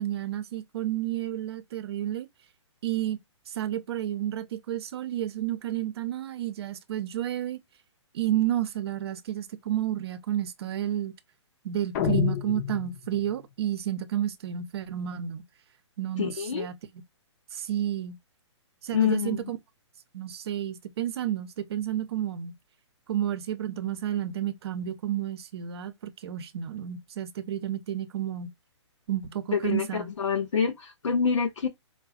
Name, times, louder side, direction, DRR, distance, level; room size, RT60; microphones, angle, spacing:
voice 1, 0.0-2.3 2.8-3.2 3.5-7.6 8.1-11.1 11.6-15.4 16.0-16.7 17.5-18.2 18.8-19.6 20.1-22.5 23.1-28.5 29.1-30.1, right 11 dB, 55° right, 0.7 m, -31 dB
sound 1, 11.9-13.4, left 9 dB, 35° left, 0.6 m, -28 dB
voice 2, 16.2-16.7 18.9-19.5 29.5-31.7, left 6 dB, 90° left, 0.9 m, -26 dB
4.7 x 2.2 x 2.5 m
hypercardioid pair, 145°, 16 cm